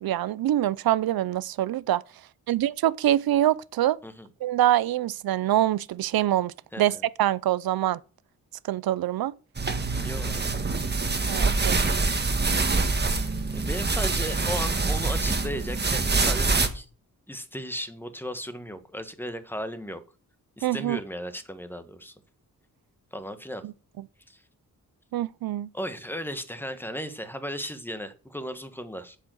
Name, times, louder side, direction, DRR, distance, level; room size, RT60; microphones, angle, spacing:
voice 1, 0.0-2.0 2.5-4.0 4.4-8.0 8.7-9.3 11.3-11.8 20.6-21.0 23.6-23.7 25.1-25.7, right 13 dB, 90° right, 0.6 m, -25 dB
voice 2, 6.7-7.1 10.0-10.4 13.5-16.9 17.3-20.0 20.6-22.1 23.1-23.6 24.3-24.4 25.7-29.2, equal, 5° left, 1.4 m, -35 dB
sound 1, 9.6-16.7, right 3 dB, 30° right, 1.5 m, -25 dB
8.2 x 7.9 x 6.4 m
cardioid pair, 95°, 35 cm